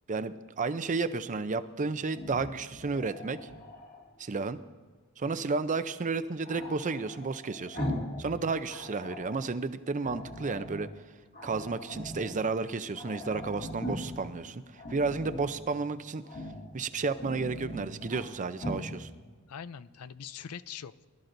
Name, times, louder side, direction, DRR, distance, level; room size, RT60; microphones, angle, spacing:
voice 1, 0.1-3.5 4.2-4.6 5.2-7.9 8.2-10.9 11.4-16.2 16.7-19.1, right 4 dB, 35° right, 12 dB, 0.5 m, -32 dB
Growling, 2.1-4.1 6.4-8.2 8.5-9.4 10.0-10.9 11.3-12.3 12.6-12.7 12.9-14.3 14.7-15.5 16.2-16.7 17.0-18.2 18.6-18.9, left 1 dB, 45° left, 2.1 m, -40 dB
voice 2, 19.5-21.1, left 7 dB, 85° left, 15 dB, 0.5 m, -44 dB
23.0 x 13.0 x 2.6 m, 1.4 s
head